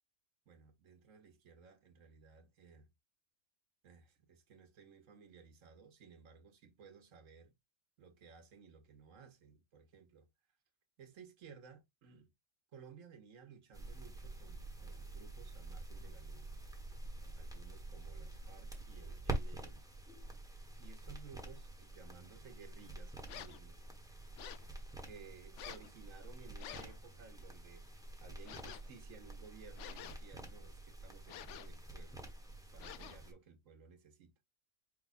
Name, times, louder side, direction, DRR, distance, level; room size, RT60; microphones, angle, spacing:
voice 1, 0.5-2.9 3.8-7.5 8.0-10.3 11.0-12.3 12.7-16.5 17.3-19.9 20.8-23.8 25.0-32.3 32.7-34.3, right 6 dB, 75° right, 1.3 m, -58 dB
sound 1, 13.7-33.3, right 2 dB, 5° right, 1.1 m, -47 dB
sound 2, 23.3-23.7 24.4-24.7 25.5-25.9 26.6-27.0 28.4-28.9 29.8-30.4 31.3-31.8 32.8-33.3, left 10 dB, 70° left, 0.9 m, -50 dB
5.2 x 2.3 x 4.0 m
omnidirectional pair, 1.3 m